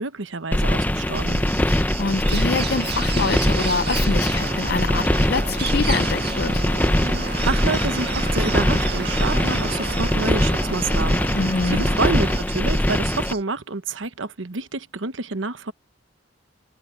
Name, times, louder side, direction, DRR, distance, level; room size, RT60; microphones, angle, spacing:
voice 1, 0.0-1.4 7.4-11.2 11.7-15.7, right 3 dB, 80° right, 1.1 m, -28 dB
sound 1, 0.5-13.3, left 1 dB, 10° left, 0.7 m, -22 dB
sound 2, 1.1-13.4, right 7 dB, 35° right, 3.4 m, -39 dB
voice 2, 1.7-6.6 11.3-11.9, left 4 dB, 55° left, 0.6 m, -26 dB
sound 3, 2.2-12.4, right 5 dB, 55° right, 1.8 m, -32 dB
head